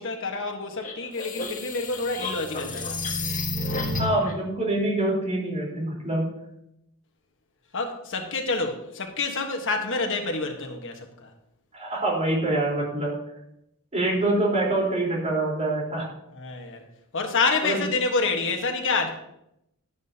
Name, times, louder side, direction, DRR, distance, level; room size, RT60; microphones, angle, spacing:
voice 1, 0.0-3.0 7.7-11.3 16.3-16.8 17.1-19.1, left 3 dB, 60° left, 4 dB, 1.5 m, -28 dB
sound 1, 0.8-4.3, left 2 dB, 40° left, 1.5 m, -30 dB
voice 2, 3.9-6.3 11.7-13.1 13.9-16.1 17.6-17.8, right 2 dB, 30° right, -3 dB, 4.2 m, -25 dB
12.0 x 10.5 x 2.9 m, 0.80 s
head